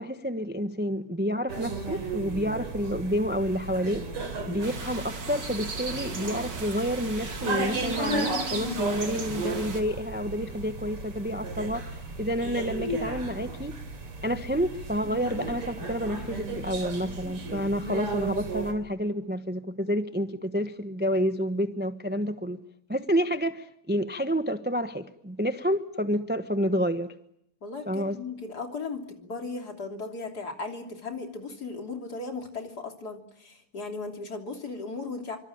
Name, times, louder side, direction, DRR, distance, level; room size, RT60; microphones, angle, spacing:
voice 1, 0.0-4.0 4.5-13.8 14.2-22.6 22.9-27.1 27.9-28.2, equal, 10° right, 9 dB, 0.6 m, -29 dB
sound 1, 1.5-18.7, right 2 dB, 90° right, 4.5 m, -34 dB
sound 2, 4.6-9.8, right 4 dB, 50° right, 3.4 m, -37 dB
voice 2, 27.6-35.4, left 3 dB, 45° left, 4 dB, 3.7 m, -37 dB
25.5 x 24.5 x 8.8 m, 0.75 s
omnidirectional pair, 2.4 m